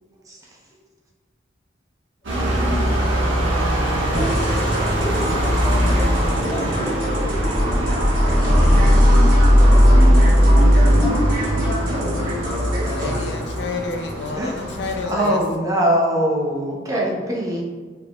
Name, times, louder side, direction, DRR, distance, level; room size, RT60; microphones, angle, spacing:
sound 1, 2.2-15.0, equal, 90° right, 1.4 m, -18 dB
sound 2, 4.1-13.3, right 1 dB, 45° right, 1.0 m, -28 dB
voice 1, 5.3-7.3, equal, 30° left, 1.0 m, -45 dB
voice 2, 12.8-15.6, left 4 dB, 65° left, 0.5 m, -30 dB
voice 3, 15.0-17.6, right 1 dB, 20° right, 0.7 m, -22 dB
4.7 x 4.0 x 2.4 m
head